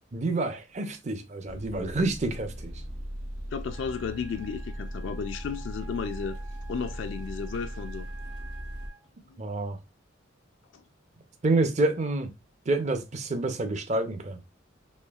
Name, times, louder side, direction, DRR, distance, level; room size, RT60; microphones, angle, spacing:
voice 1, 0.1-2.7 9.4-9.8 11.4-12.3 12.7-14.4, right 2 dB, 35° right, 0.5 m, -28 dB
sound 1, 1.5-8.9, equal, 75° right, 1.3 m, -38 dB
voice 2, 3.5-6.4 6.7-8.1 9.3-9.4 10.7-10.8, left 6 dB, 65° left, 0.3 m, -33 dB
Wind instrument woodwind instrument, 3.7-9.1, right 6 dB, 55° right, 1.5 m, -51 dB
4.3 x 3.0 x 2.3 m
head